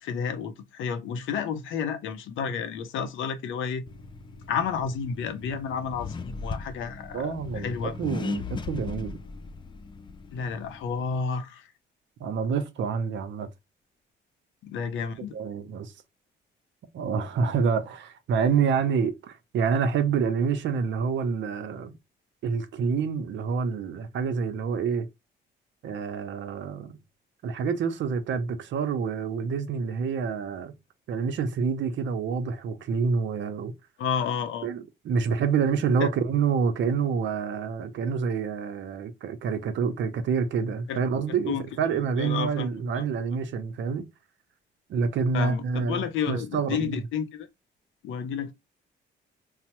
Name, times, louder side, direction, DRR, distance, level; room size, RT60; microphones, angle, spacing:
voice 1, 0.0-3.8 4.5-7.9 10.3-11.7 14.6-15.4 34.0-34.7 36.0-36.1 40.9-41.0 41.5-42.7 42.9-43.2 45.3-47.5 48.0-48.5, left 6 dB, 80° left, 0.6 m, -31 dB
Accelerating revving vroom, 3.9-11.2, left 4 dB, 25° left, 0.3 m, -38 dB
voice 2, 7.1-9.2 12.2-13.5 15.3-15.9 16.9-21.9 22.4-25.1 25.8-27.0 27.4-30.7 31.1-33.7 34.6-44.1 44.9-47.0, right 6 dB, 70° right, 0.6 m, -27 dB
3.2 x 2.0 x 2.9 m
cardioid pair, 90°, 20 cm